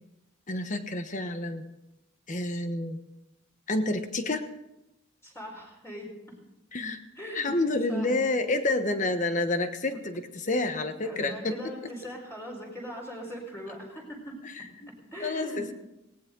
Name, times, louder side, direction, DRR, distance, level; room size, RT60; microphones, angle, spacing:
voice 1, 0.5-1.6 2.3-3.0 3.7-4.4 6.7-7.0 7.3-11.6 14.4-14.9 15.2-15.7, left 2 dB, 40° left, 8 dB, 1.2 m, -29 dB
voice 2, 5.2-6.1 7.2-7.6 7.9-8.2 9.9-10.0 11.0-14.4 15.1-15.6, equal, 15° left, -2 dB, 4.3 m, -40 dB
18.5 x 18.0 x 3.9 m, 0.93 s
head